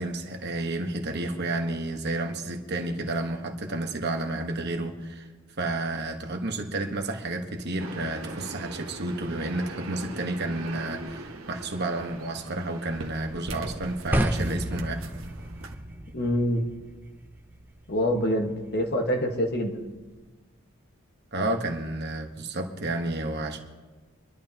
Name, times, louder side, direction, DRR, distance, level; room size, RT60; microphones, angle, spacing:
voice 1, 0.0-5.3 5.6-15.1 21.3-23.6, right 2 dB, 50° right, 4 dB, 1.3 m, -31 dB
sound 1, 7.8-15.8, right 2 dB, 75° right, 1.3 m, -40 dB
sound 2, 14.1-20.3, right 1 dB, 10° right, 0.7 m, -34 dB
voice 2, 16.1-16.6 17.9-19.8, equal, 50° left, 3 dB, 1.5 m, -26 dB
26.0 x 11.5 x 2.9 m, 1.3 s
head